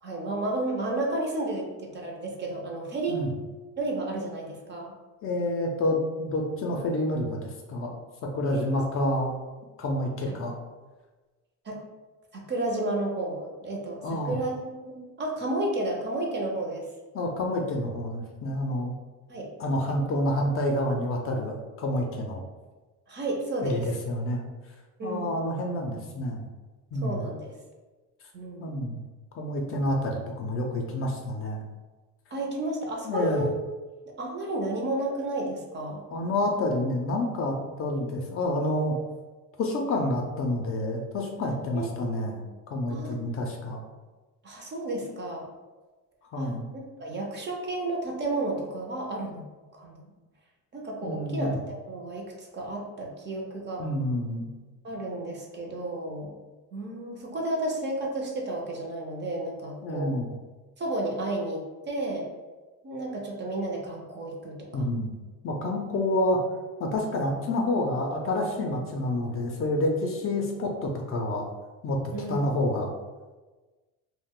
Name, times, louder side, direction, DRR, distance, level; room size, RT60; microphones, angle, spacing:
voice 1, 0.0-3.4 3.8-4.9 8.5-8.6 10.3-10.4 11.7-11.8 12.3-14.5 14.8-16.9 19.3-19.5 23.1-23.9 25.0-25.3 27.0-27.5 28.3-28.7 32.3-33.6 34.0-36.0 41.7-42.2 42.9-43.2 44.4-45.5 46.4-49.4 49.7-50.1 50.7-53.8 54.8-56.3 56.7-60.1 60.8-62.3 62.8-64.8 72.1-72.5, right 2 dB, 30° right, 0 dB, 0.5 m, -32 dB
voice 2, 5.2-7.9 8.2-9.3 9.8-10.6 14.0-14.4 17.1-18.9 19.6-22.4 23.6-24.5 25.0-26.4 26.9-27.2 28.6-29.0 29.4-31.6 33.0-33.4 36.1-39.0 39.6-43.8 46.3-46.7 51.0-51.6 53.8-54.5 59.8-60.3 64.7-65.1 65.4-66.4 66.8-71.5 71.8-72.0 72.3-72.9, left 1 dB, 40° left, 1 dB, 0.4 m, -28 dB
2.3 x 2.1 x 3.5 m, 1.2 s
cardioid pair, 130°, 35 cm